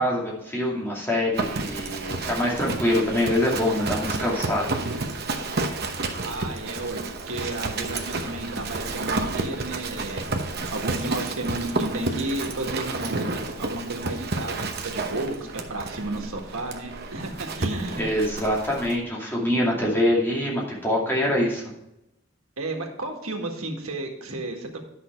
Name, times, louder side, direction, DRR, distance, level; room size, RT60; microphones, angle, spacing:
voice 1, 0.0-4.7 18.0-21.6, left 1 dB, 10° left, -4 dB, 2.4 m, -24 dB
Livestock farm animals working animals, 1.3-18.9, right 3 dB, 45° right, 1.0 m, -31 dB
voice 2, 6.2-10.2 10.7-18.1 22.6-24.8, right 2 dB, 75° right, 2 dB, 1.8 m, -32 dB
10.5 x 6.1 x 4.5 m, 0.86 s
head